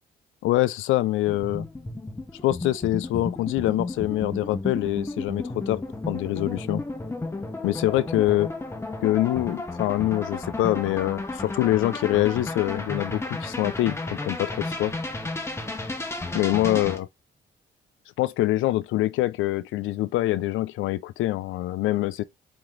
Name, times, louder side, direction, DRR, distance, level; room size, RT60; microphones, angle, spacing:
voice 1, 0.4-1.7 2.4-6.8 7.6-8.5 9.0-14.9 16.3-17.1 18.2-22.2, left 16 dB, 85° left, 0.5 m, -25 dB
sound 1, 1.4-17.0, left 2 dB, 15° left, 1.1 m, -33 dB
4.5 x 3.1 x 3.8 m
cardioid pair, 90°, 20 cm